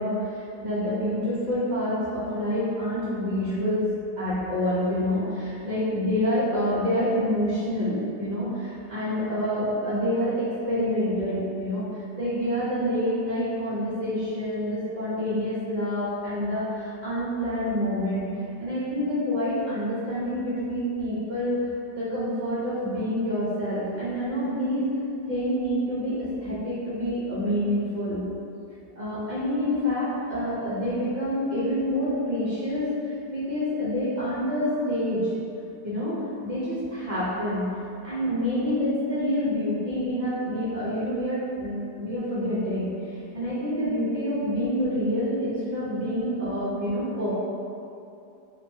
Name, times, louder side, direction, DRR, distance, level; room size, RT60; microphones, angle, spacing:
voice 1, 0.0-3.8 4.2-11.9 12.2-18.3 18.6-21.6 22.0-24.8 25.3-28.2 29.0-32.9 33.3-35.3 35.8-37.6 38.0-42.9 43.3-47.3, equal, 75° right, -11 dB, 0.4 m, -27 dB
2.8 x 2.3 x 2.6 m, 2.6 s
omnidirectional pair, 1.8 m